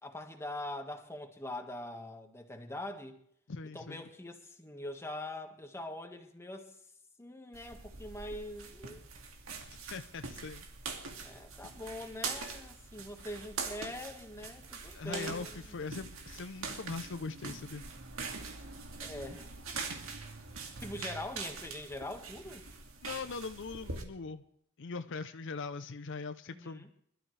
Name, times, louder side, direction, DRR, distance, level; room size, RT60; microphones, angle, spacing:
voice 1, 0.0-3.2 3.7-6.8 7.2-9.0 11.2-15.8 19.0-19.5 20.6-22.7 26.5-26.9, left 1 dB, 15° left, 4 dB, 1.6 m, -43 dB
voice 2, 3.5-4.0 9.7-10.7 14.9-17.8 23.0-24.4 24.8-26.9, left 4 dB, 60° left, 10 dB, 0.6 m, -41 dB
sound 1, 7.5-24.0, right 4 dB, 70° right, 2.3 m, -43 dB
25.0 x 12.5 x 3.3 m, 0.66 s
head